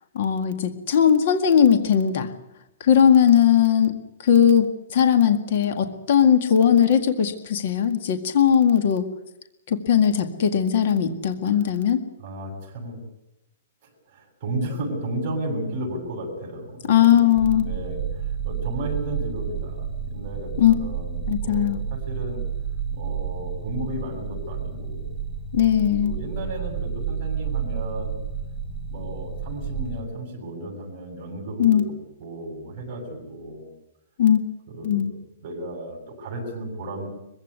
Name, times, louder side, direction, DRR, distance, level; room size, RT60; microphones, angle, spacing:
voice 1, 0.2-2.3 2.8-9.1 9.7-12.0 16.9-17.7 20.6-20.7 21.3-21.8 25.5-26.1 31.6-31.8 34.2-34.4 34.8-35.1, left 9 dB, 45° left, 8 dB, 1.9 m, -19 dB
voice 2, 12.2-13.0 13.8-22.4 22.9-25.1 26.0-28.1 28.9-31.8 32.2-33.7 34.7-35.0 35.4-37.1, right 1 dB, 25° right, 0 dB, 7.4 m, -34 dB
sound 1, 17.3-30.0, right 7 dB, 10° right, 1.5 m, -31 dB
23.0 x 15.5 x 9.5 m, 0.86 s
hypercardioid pair, 180°, 0 cm